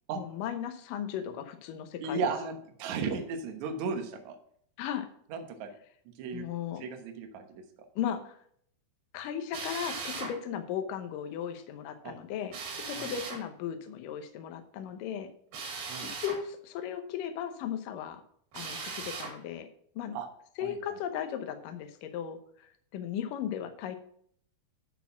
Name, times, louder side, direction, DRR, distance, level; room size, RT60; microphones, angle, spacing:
voice 1, 0.1-2.2 4.8-5.1 6.3-6.8 8.0-8.3 9.1-12.5 12.9-15.3 16.2-18.2 18.5-19.7 20.0-20.2 20.6-24.0, left 9 dB, 85° left, 7 dB, 1.9 m, -36 dB
voice 2, 2.0-4.4 5.3-5.7 6.1-6.5 6.8-7.6 12.0-12.1 12.9-13.1 15.9-16.1 20.1-20.3 20.6-20.8, right 4 dB, 80° right, 5 dB, 1.6 m, -35 dB
Drill, 9.5-10.3 12.5-13.4 15.5-16.4 18.5-19.3, right 4 dB, 65° right, 4.0 m, -38 dB
12.0 x 4.3 x 5.7 m, 0.64 s
omnidirectional pair, 5.2 m